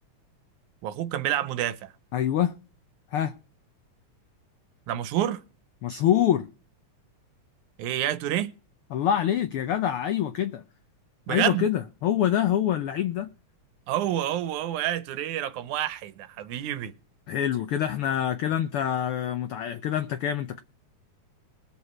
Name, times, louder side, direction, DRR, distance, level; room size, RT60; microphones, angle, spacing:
voice 1, 0.8-1.9 4.9-5.4 7.8-8.5 11.3-11.7 13.9-16.9, right 12 dB, 80° right, 2.3 m, -28 dB
voice 2, 2.1-2.5 3.1-3.3 5.8-6.5 8.9-10.6 11.3-13.3 17.3-20.6, left 10 dB, 80° left, 1.2 m, -25 dB
20.5 x 7.3 x 4.4 m
omnidirectional pair, 3.4 m